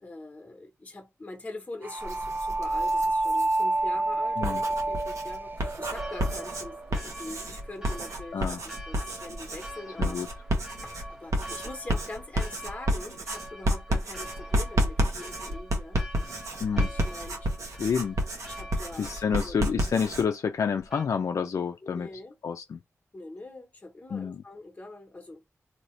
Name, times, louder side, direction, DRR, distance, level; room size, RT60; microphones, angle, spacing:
voice 1, 0.0-6.7 7.0-10.2 10.8-16.0 16.7-17.5 18.5-19.5 21.8-22.4 23.1-25.4, left 2 dB, 25° left, 1.3 m, -43 dB
sound 1, 1.8-7.0, right 2 dB, 35° right, 0.3 m, -29 dB
Writing, 2.0-3.6 4.2-20.2, equal, 70° right, 1.1 m, -31 dB
Church bell, 5.9-21.1, equal, 10° right, 0.9 m, -45 dB
voice 2, 17.8-18.2 19.0-22.1 22.4-22.8 24.1-24.4, left 6 dB, 80° left, 0.5 m, -29 dB
2.9 x 2.7 x 3.2 m
wide cardioid pair, 100°, 5 cm